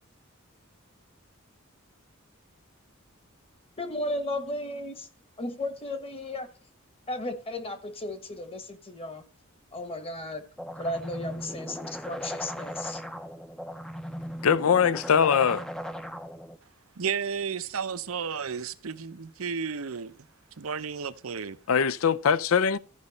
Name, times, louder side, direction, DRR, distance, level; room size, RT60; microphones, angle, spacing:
voice 1, 3.8-5.1 5.4-6.5 7.1-9.2 9.7-10.5 10.8-13.0, left 1 dB, 25° left, 1.2 m, -34 dB
sound 1, 10.6-16.6, equal, 5° left, 0.5 m, -38 dB
voice 2, 14.4-15.6 21.7-22.8, left 7 dB, 80° left, 0.5 m, -22 dB
voice 3, 17.0-20.1 20.6-21.6, right 6 dB, 90° right, 0.7 m, -32 dB
14.0 x 5.4 x 4.1 m
head